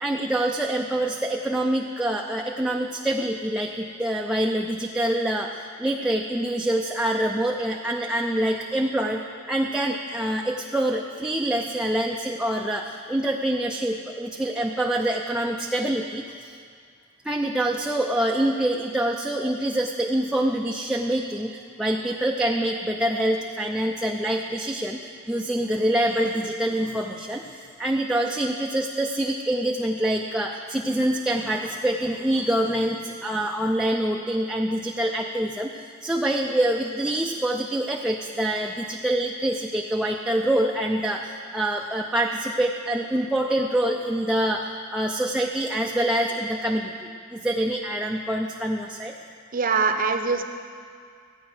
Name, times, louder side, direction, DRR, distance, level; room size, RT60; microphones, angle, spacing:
voice 1, 0.0-16.2 17.3-44.6 44.9-49.1, right 1 dB, 5° right, -1 dB, 0.5 m, -25 dB
voice 2, 49.5-50.4, right 5 dB, 40° right, 6 dB, 0.8 m, -23 dB
15.0 x 8.9 x 6.0 m, 2.2 s
head